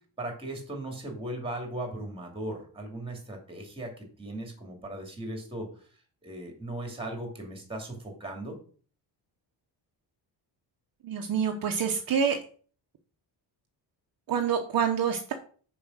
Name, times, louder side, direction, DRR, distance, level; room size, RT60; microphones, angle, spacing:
voice 1, 0.2-5.7 6.2-8.6, right 1 dB, 10° right, 2 dB, 2.5 m, -37 dB
voice 2, 11.0-12.4 14.3-15.3, right 7 dB, 50° right, 3 dB, 1.0 m, -27 dB
7.0 x 5.2 x 6.4 m, 0.42 s
cardioid pair, 175°, 44 cm